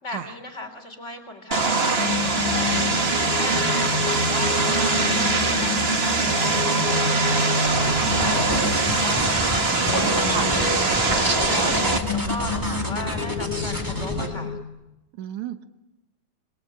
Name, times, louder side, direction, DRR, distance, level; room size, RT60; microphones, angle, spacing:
voice 1, 0.0-6.2 6.6-9.4 9.9-11.7 12.1-14.6, left 1 dB, 25° left, 5 dB, 3.6 m, -37 dB
Vehicle, 1.5-12.0, right 3 dB, 30° right, 1.1 m, -23 dB
sound 1, 1.9-14.6, left 6 dB, 85° left, 2.8 m, -30 dB
sound 2, 7.7-14.3, equal, 5° right, 2.2 m, -29 dB
voice 2, 9.7-10.5 15.2-15.6, right 10 dB, 75° right, 8 dB, 2.5 m, -33 dB
27.5 x 21.5 x 7.6 m, 0.96 s
omnidirectional pair, 3.4 m